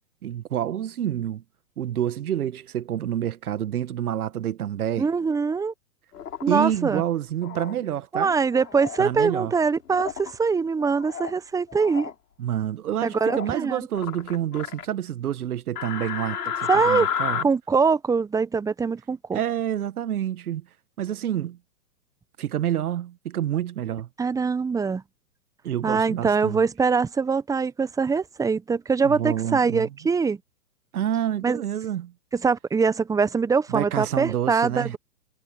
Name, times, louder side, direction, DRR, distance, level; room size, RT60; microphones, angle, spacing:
voice 1, 0.2-1.4 1.8-5.1 6.5-8.3 9.0-9.5 12.4-17.4 19.3-20.6 21.0-21.6 22.4-24.1 25.6-26.6 29.0-29.9 30.9-32.1 33.7-35.0, right 11 dB, 70° right, 1.3 m, -28 dB
voice 2, 5.0-5.7 6.4-7.0 8.1-12.1 13.0-13.9 16.7-17.1 17.4-19.4 24.2-25.0 25.8-30.4 31.4-31.6 32.3-35.0, right 5 dB, 5° right, 1.1 m, -23 dB
sound 1, 6.1-6.7 7.4-7.7 8.5-9.0 9.9-10.3 10.8-11.4 11.7-12.1 13.1-13.5 13.9-14.9 15.8-17.4, left 8 dB, 75° left, 6.2 m, -31 dB
hypercardioid pair, 120°, 46 cm